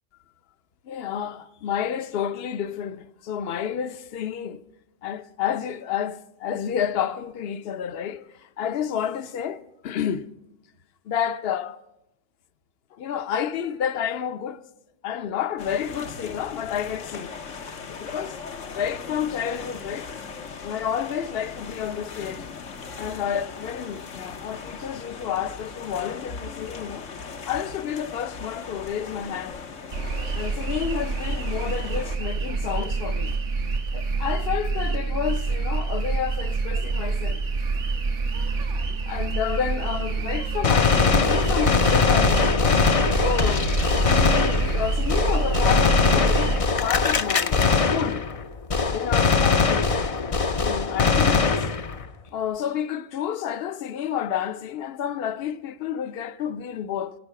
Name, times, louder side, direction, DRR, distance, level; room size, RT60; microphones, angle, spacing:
voice 1, 0.8-4.6 5.0-10.3 11.1-11.8 12.9-14.6 15.0-17.3 17.9-18.4 18.7-20.1 20.6-22.5 23.0-27.1 27.5-29.6 30.3-33.4 33.9-37.6 39.1-42.8 43.2-43.7 44.1-48.3 48.9-50.0 50.6-51.7 52.3-57.2, left 9 dB, 60° left, 0.9 m, -30 dB
sound 1, 15.6-32.2, left 5 dB, 85° left, 1.4 m, -39 dB
sound 2, 29.9-46.6, right 4 dB, 80° right, 1.5 m, -27 dB
Gunshot gunfire, 40.6-48.4 48.7-52.1, left 5 dB, 40° left, 0.5 m, -21 dB
25.5 x 9.0 x 5.8 m
omnidirectional pair, 1.3 m